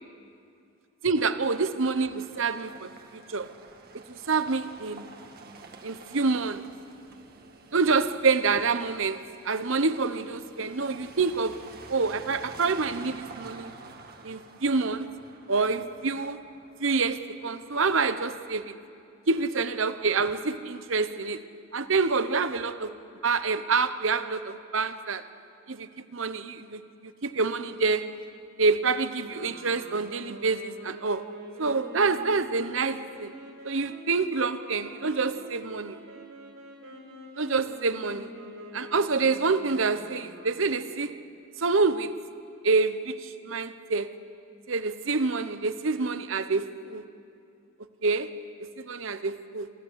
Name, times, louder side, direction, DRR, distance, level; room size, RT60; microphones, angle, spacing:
voice 1, 1.0-3.5 4.1-5.1 5.8-6.6 7.7-11.6 11.9-13.7 14.2-15.1 15.5-16.4 16.8-18.7 19.3-21.4 21.7-22.9 23.2-25.3 25.7-28.1 28.6-31.2 31.6-33.3 33.6-36.0 37.4-38.3 38.7-41.2 41.6-42.2 42.6-44.1 44.7-47.0 48.0-48.4 48.8-49.7, right 4 dB, 60° right, 12 dB, 0.9 m, -27 dB
sound 1, 1.5-18.5, right 3 dB, 45° right, 1.7 m, -49 dB
sound 2, 29.2-41.1, right 1 dB, 80° right, 5.4 m, -46 dB
26.5 x 15.0 x 8.2 m, 2.4 s
head